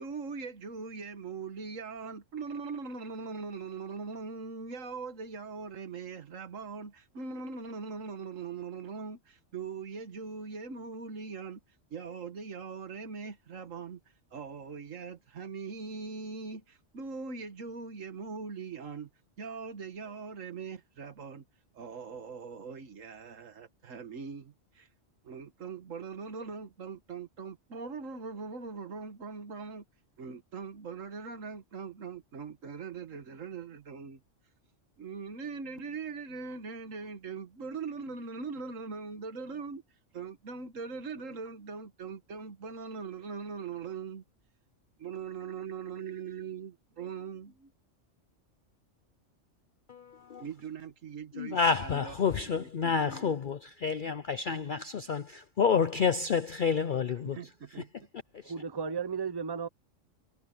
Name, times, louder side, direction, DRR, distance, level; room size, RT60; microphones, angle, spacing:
voice 1, 0.0-11.6 11.9-14.0 14.3-19.1 19.4-21.4 21.7-24.9 25.2-29.8 30.2-34.2 35.0-39.8 40.1-44.2 45.0-47.7 50.4-53.3 57.2-57.9, right 5 dB, 80° right, 1.9 m, -41 dB
voice 2, 49.9-50.4 51.3-57.4 57.8-57.9 58.3-58.5, left 6 dB, 50° left, 0.7 m, -29 dB
voice 3, 58.4-59.7, right 6 dB, 40° right, 0.4 m, -34 dB
omnidirectional pair, 1.3 m